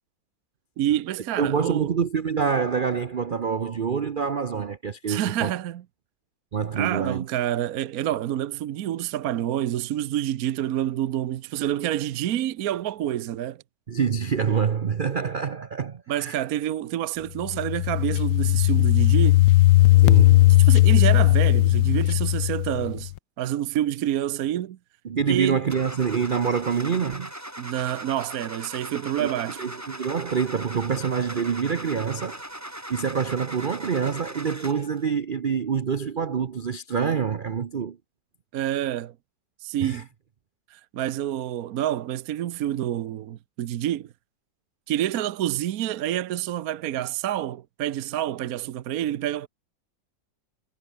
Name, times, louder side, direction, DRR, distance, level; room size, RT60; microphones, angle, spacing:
voice 1, 0.8-1.9 5.1-5.8 6.7-13.6 16.1-19.4 20.6-23.1 23.4-24.8 25.3-25.6 27.6-29.6 38.5-39.1 39.6-40.1 40.7-44.1 44.9-49.5, right 12 dB, 60° right, 1.1 m, -28 dB
voice 2, 1.4-5.5 6.5-7.2 13.9-16.4 20.0-20.5 25.0-27.3 29.2-32.4 32.9-38.0 39.8-40.0, right 6 dB, 85° right, 0.4 m, -26 dB
sound 1, 17.4-23.1, left 17 dB, 80° left, 1.2 m, -17 dB
Car / Engine starting, 25.7-35.0, right 1 dB, 10° right, 3.1 m, -39 dB
omnidirectional pair, 2.0 m